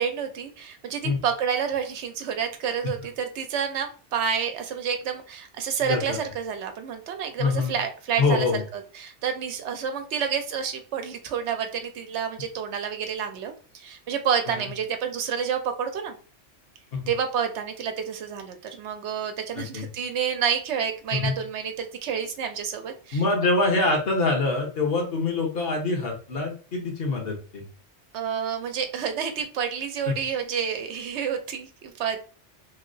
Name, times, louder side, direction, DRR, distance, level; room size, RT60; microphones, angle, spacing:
voice 1, 0.0-16.1 17.1-23.2 28.1-32.2, right 7 dB, 75° right, 6 dB, 0.8 m, -29 dB
voice 2, 5.9-6.2 7.4-7.7 8.2-8.6 14.5-14.7 16.9-17.0 19.6-19.9 21.1-21.3 23.1-27.6 30.1-30.2, left 3 dB, 60° left, 1 dB, 1.2 m, -25 dB
3.1 x 2.8 x 2.6 m, 0.38 s
omnidirectional pair, 1.2 m